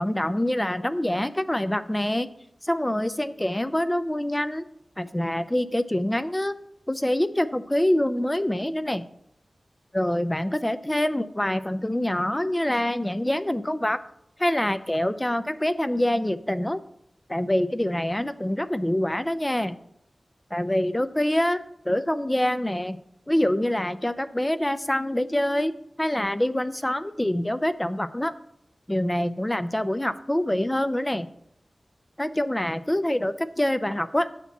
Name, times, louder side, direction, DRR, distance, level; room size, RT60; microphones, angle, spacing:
voice 1, 0.0-2.3 2.6-4.7 5.0-6.5 6.9-9.0 9.9-14.0 14.4-16.8 17.3-19.8 20.5-23.0 23.3-25.7 26.0-28.3 28.9-31.3 32.2-34.3, left 1 dB, 15° left, 12 dB, 0.5 m, -25 dB
9.5 x 4.4 x 7.1 m, 0.74 s
wide cardioid pair, 85°, 0 cm